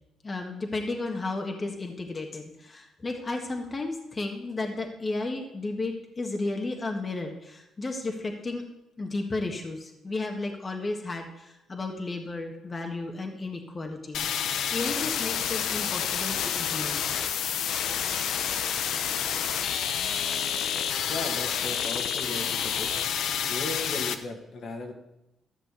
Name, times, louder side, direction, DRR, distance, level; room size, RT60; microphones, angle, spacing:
voice 1, 0.2-8.6 9.0-14.3 14.7-17.0, left 2 dB, 30° left, 2 dB, 1.7 m, -33 dB
sound 1, 14.1-24.1, left 8 dB, 75° left, 0.9 m, -29 dB
voice 2, 21.1-22.9 23.5-24.9, left 2 dB, 60° left, 3 dB, 2.1 m, -36 dB
13.5 x 6.1 x 8.4 m, 0.88 s
cardioid pair, 90°, 0 cm